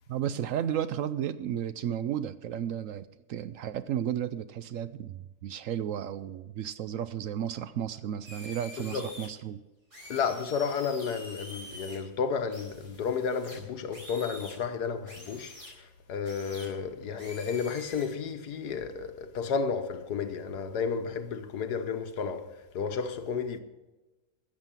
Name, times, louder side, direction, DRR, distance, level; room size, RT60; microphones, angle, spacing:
voice 1, 0.1-9.6, right 10 dB, 70° right, 0.8 m, -33 dB
sound 1, 8.2-9.3 9.9-11.9 12.5-14.6 15.0-15.7 16.2-16.7 17.1-18.1, left 1 dB, 50° right, 5.0 m, -46 dB
voice 2, 8.8-9.1 10.1-23.6, left 6 dB, 90° left, 1.6 m, -32 dB
13.5 x 7.5 x 7.4 m
omnidirectional pair, 1.7 m